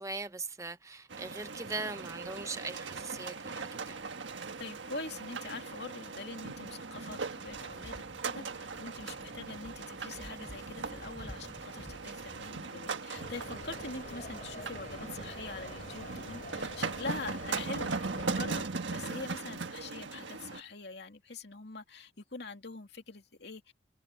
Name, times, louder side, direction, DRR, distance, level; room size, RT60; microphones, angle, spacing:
voice 1, 0.0-4.0, right 3 dB, 15° right, 0.7 m, -40 dB
sound 1, 1.1-20.6, right 4 dB, 80° right, 1.5 m, -39 dB
voice 2, 4.6-23.7, left 3 dB, 60° left, 2.8 m, -44 dB
Thunder / Rain, 7.4-12.6, equal, 20° left, 6.0 m, -51 dB
sound 2, 13.1-18.6, left 2 dB, 45° left, 3.6 m, -47 dB
head